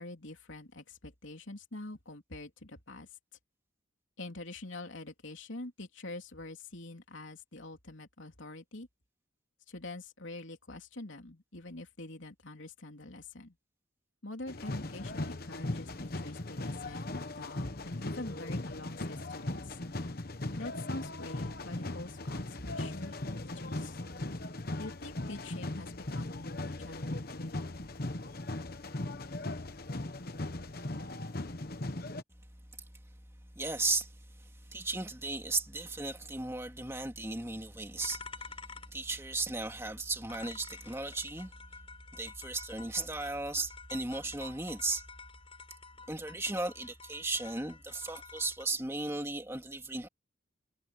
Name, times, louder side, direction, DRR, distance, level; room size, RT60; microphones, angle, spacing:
voice 1, 0.0-3.1 4.2-8.9 9.7-13.5 14.2-19.8 20.6-24.0 24.8-27.7, left 2 dB, 70° left, 3.3 m, -45 dB
sound 1, 14.5-32.2, left 2 dB, 45° left, 1.1 m, -38 dB
voice 2, 33.6-34.1 34.7-38.2 38.9-41.5 42.1-45.0 46.1-50.1, right 3 dB, 15° right, 2.3 m, -35 dB
sound 2, 38.0-48.6, left 4 dB, 25° left, 5.0 m, -50 dB
head